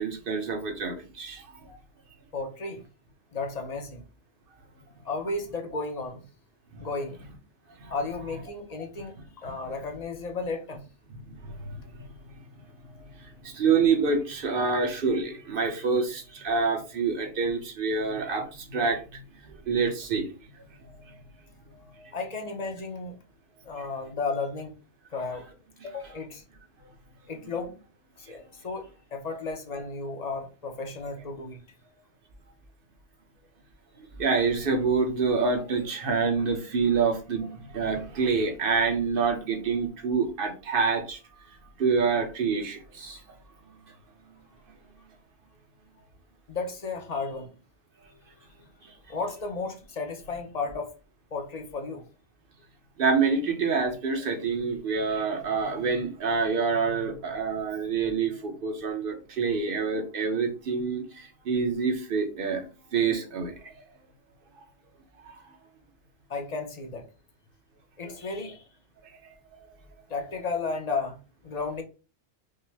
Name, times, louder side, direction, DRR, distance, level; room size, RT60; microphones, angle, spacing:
voice 1, 0.0-1.8 7.8-7.9 11.4-11.7 13.4-19.2 19.5-20.3 34.0-41.2 41.8-43.2 53.0-63.7 65.2-65.3, right 5 dB, 55° right, 1.0 m, -27 dB
voice 2, 2.3-2.8 3.3-4.0 5.0-6.2 6.8-7.3 7.9-10.8 22.1-23.2 23.6-24.8 25.1-25.5 25.8-26.4 27.3-27.7 28.2-31.6 46.5-47.5 48.8-50.9 51.3-52.1 66.3-67.1 68.0-68.7 70.1-71.2 71.4-71.8, left 3 dB, 40° left, 0.7 m, -33 dB
5.4 x 2.1 x 3.3 m
omnidirectional pair, 1.2 m